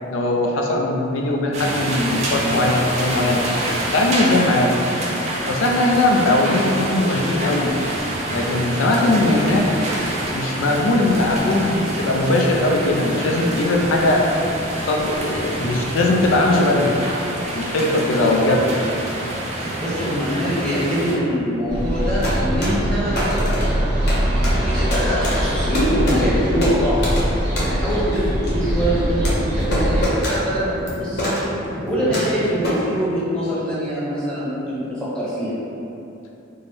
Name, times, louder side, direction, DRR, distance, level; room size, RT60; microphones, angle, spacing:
voice 1, 0.1-3.5 3.9-4.8 5.5-7.7 8.3-9.7 10.3-14.3 14.9-17.0 17.5-18.7, left 2 dB, 85° left, 0 dB, 0.4 m, -19 dB
sound 1, 1.5-21.1, right 1 dB, 35° right, 0.5 m, -27 dB
voice 2, 19.8-27.1 27.6-31.4 31.8-35.6, equal, 5° left, -9 dB, 0.8 m, -24 dB
sound 2, 21.7-30.0, equal, 60° right, 1.2 m, -22 dB
sound 3, 21.9-33.0, equal, 55° left, 0.9 m, -27 dB
4.3 x 2.1 x 3.3 m, 2.8 s
head